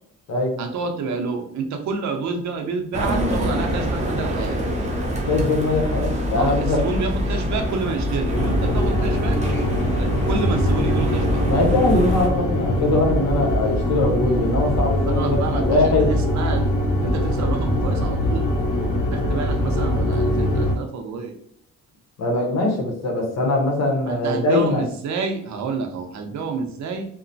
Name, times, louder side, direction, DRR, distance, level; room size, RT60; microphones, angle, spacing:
voice 1, 0.6-4.6 6.3-9.4 10.0-11.4 15.1-16.7 17.0-18.5 19.1-21.4 24.1-27.1, right 4 dB, 65° right, 5 dB, 0.6 m, -29 dB
sound 1, 2.9-12.3, equal, 25° right, 0.7 m, -25 dB
voice 2, 5.3-6.9 11.5-16.1 22.2-24.8, left 2 dB, 65° left, 0 dB, 1.0 m, -21 dB
sound 2, 8.3-20.7, equal, 85° left, 0.8 m, -22 dB
2.9 x 2.1 x 2.6 m, 0.67 s
cardioid pair, 90°, 30 cm